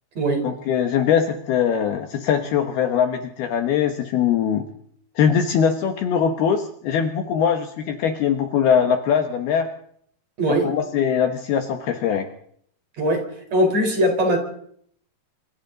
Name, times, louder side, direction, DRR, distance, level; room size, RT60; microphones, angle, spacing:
voice 1, 0.4-4.7 5.2-9.7 10.5-12.3, left 8 dB, 70° left, 5 dB, 2.5 m, -21 dB
voice 2, 10.4-10.7 13.0-13.2 13.5-14.4, right 1 dB, 35° right, 3 dB, 5.0 m, -20 dB
26.5 x 26.0 x 4.0 m, 0.66 s
omnidirectional pair, 5.9 m